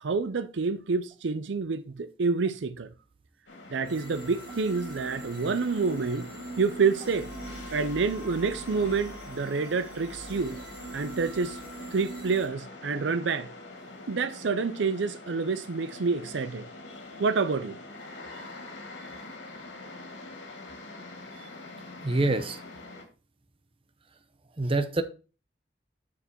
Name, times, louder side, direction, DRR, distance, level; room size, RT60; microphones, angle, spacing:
voice 1, 0.0-2.9 3.7-6.3 6.6-7.3 7.7-10.6 10.9-11.6 11.9-13.5 14.1-16.6 17.2-17.8, right 4 dB, 70° right, 0.5 m, -28 dB
sound 1, 3.5-23.0, left 2 dB, 70° left, 2.4 m, -44 dB
sound 2, 3.8-12.5, right 3 dB, 50° right, 2.1 m, -42 dB
voice 2, 22.0-22.6 24.6-25.0, right 2 dB, 30° right, 0.7 m, -25 dB
6.9 x 6.6 x 4.5 m
head